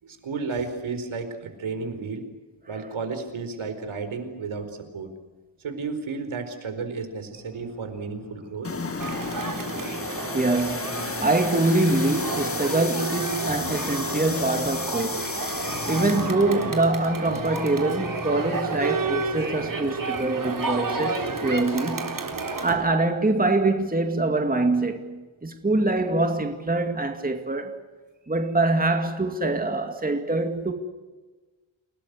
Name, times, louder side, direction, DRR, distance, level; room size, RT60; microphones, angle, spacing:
voice 1, 0.0-2.2 2.7-5.1 5.6-8.7, right 4 dB, 75° right, 4.6 m, -32 dB
sound 1, 7.3-22.0, left 3 dB, 45° left, 5.0 m, -41 dB
sound 2, 8.6-16.3, left 4 dB, 30° left, 1.5 m, -33 dB
Crowd, 9.0-22.7, right 3 dB, 40° right, 4.0 m, -31 dB
voice 2, 10.3-22.2 22.6-27.7 28.3-30.7, right 2 dB, 20° right, 2.3 m, -24 dB
29.0 x 18.5 x 8.2 m
wide cardioid pair, 110°, 48 cm